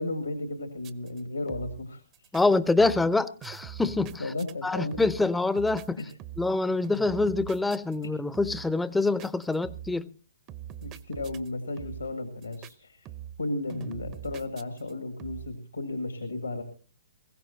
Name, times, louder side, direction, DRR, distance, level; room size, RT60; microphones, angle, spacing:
voice 1, 0.0-2.3 4.2-5.0 6.0-6.1 10.8-13.1 13.4-16.6, left 2 dB, 80° left, 2.1 m, -34 dB
sound 1, 0.8-1.2 1.5-1.9 2.1-2.4 2.8-3.2 3.4-4.5 4.9-5.3 5.6-6.6 6.8-8.1 8.3-8.7 9.2-10.0 10.5-11.5 11.8-12.2 12.4-12.7 13.1-13.4 13.7-14.9 15.2-15.6, right 11 dB, 25° right, 0.8 m, -43 dB
voice 2, 2.3-4.2 4.6-6.0 6.4-10.1, left 3 dB, 5° left, 0.6 m, -25 dB
21.0 x 16.5 x 2.8 m
figure-of-eight pair, 120°, 0 cm